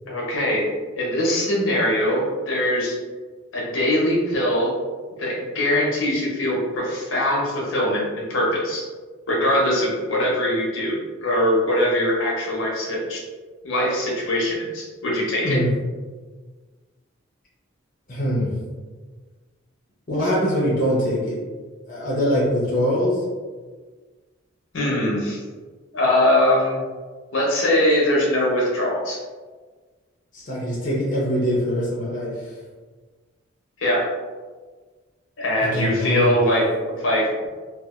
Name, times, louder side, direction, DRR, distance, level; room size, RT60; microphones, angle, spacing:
voice 1, 0.1-0.7 0.9-2.9 3.5-4.7 5.2-8.8 9.3-13.2 13.6-15.6 24.7-25.4 25.9-26.8 27.3-29.2 33.8-34.1 35.4-37.3, left 1 dB, 70° left, -4 dB, 0.8 m, -22 dB
voice 2, 18.1-18.5 20.1-21.4 21.9-23.2 30.3-32.3 35.7-36.3, equal, 40° left, -6 dB, 0.6 m, -23 dB
2.7 x 2.4 x 2.4 m, 1.4 s
head